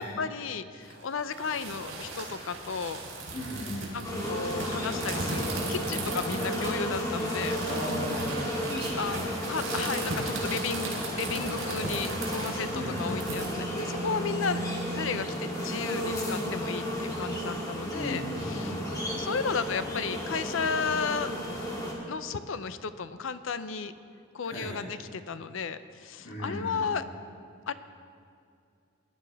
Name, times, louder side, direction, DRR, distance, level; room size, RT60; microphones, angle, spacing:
voice 1, 0.0-3.0 3.9-7.6 9.0-18.8 19.2-21.3 22.1-23.9 24.3-27.0 27.7-27.8, left 5 dB, 70° left, 12 dB, 0.5 m, -34 dB
sound 1, 0.8-13.5, right 2 dB, 75° right, 3.7 m, -37 dB
voice 2, 3.3-4.1 6.2-6.5 7.7-9.9 12.7-13.3 14.5-14.6 17.9-19.1 24.4-24.7 26.2-26.9, equal, 50° left, -7 dB, 2.6 m, -38 dB
sound 2, 4.0-21.9, equal, 20° left, 2.0 m, -33 dB
19.0 x 11.0 x 3.5 m, 2.4 s
head